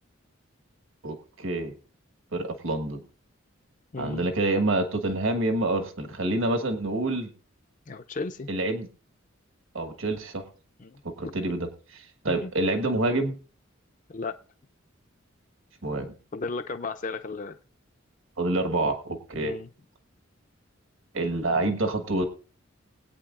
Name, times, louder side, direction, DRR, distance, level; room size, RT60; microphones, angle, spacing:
voice 1, 1.0-1.7 2.3-3.0 4.0-7.3 8.5-8.9 9.7-10.4 11.2-13.3 15.8-16.1 18.4-19.5 21.1-22.3, right 2 dB, 70° right, 6 dB, 1.4 m, -27 dB
voice 2, 3.9-4.3 7.9-8.5 10.8-11.0 11.2-11.3 12.4-12.5 14.1-14.4 16.3-17.6 19.3-19.7, left 3 dB, 40° left, 8 dB, 0.5 m, -34 dB
20.5 x 8.9 x 2.5 m, 0.38 s
head